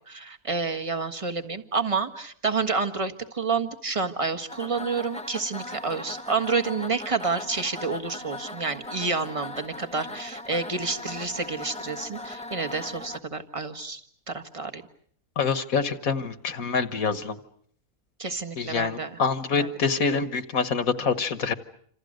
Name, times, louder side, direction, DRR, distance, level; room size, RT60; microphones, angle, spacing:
voice 1, 0.1-14.0 14.3-14.8 18.2-19.2 19.6-19.7 20.1-20.2, right 4 dB, 20° right, 7 dB, 1.5 m, -29 dB
sound 1, 4.5-13.2, left 2 dB, 5° left, 1.0 m, -39 dB
voice 2, 15.4-17.4 18.6-21.5, left 5 dB, 65° left, 11 dB, 1.7 m, -26 dB
27.5 x 27.5 x 6.6 m, 0.63 s
omnidirectional pair, 1.6 m